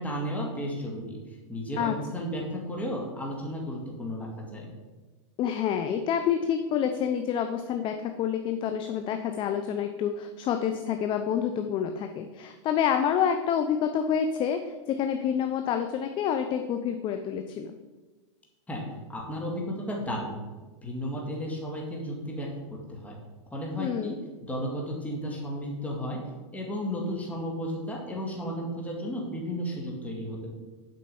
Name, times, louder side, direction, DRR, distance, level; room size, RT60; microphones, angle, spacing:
voice 1, 0.0-4.7 18.7-20.4 20.8-23.2 23.5-24.2 24.5-26.2 26.5-30.5, equal, 10° left, -1 dB, 2.1 m, -34 dB
voice 2, 5.4-17.7 23.8-24.1, left 8 dB, 30° left, 7 dB, 0.6 m, -28 dB
7.6 x 5.2 x 7.0 m, 1.2 s
hypercardioid pair, 125°, 16 cm